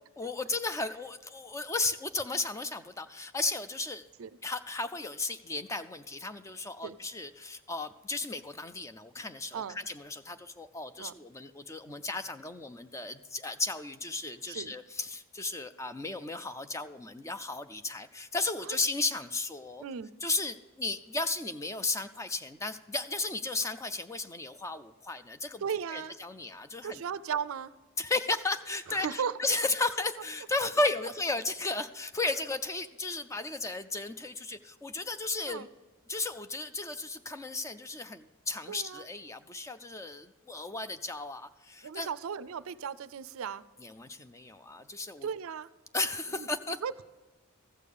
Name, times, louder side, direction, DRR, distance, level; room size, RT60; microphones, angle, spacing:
voice 1, 0.2-4.1 4.4-19.8 20.2-25.6 25.9-27.0 28.0-35.7 36.1-42.1 43.8-45.3 45.9-46.8, left 3 dB, 15° left, 10 dB, 0.4 m, -34 dB
voice 2, 25.6-26.2 26.8-27.7 28.9-29.3 35.5-35.7 38.7-39.1 41.8-43.6 45.2-45.7 46.3-47.0, right 7 dB, 65° right, 16 dB, 0.4 m, -36 dB
14.5 x 6.6 x 5.3 m, 1.2 s
head